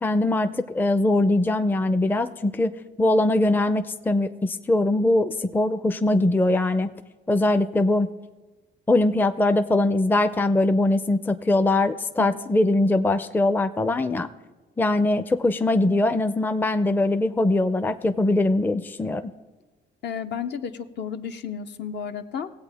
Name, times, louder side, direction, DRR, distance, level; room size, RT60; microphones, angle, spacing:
voice 1, 0.0-6.9 7.3-8.1 8.9-14.3 14.8-19.3, left 2 dB, 10° left, 10 dB, 0.4 m, -22 dB
voice 2, 20.0-22.5, left 7 dB, 60° left, 8 dB, 0.7 m, -32 dB
17.5 x 8.2 x 3.5 m, 1.2 s
cardioid pair, 90°, 20 cm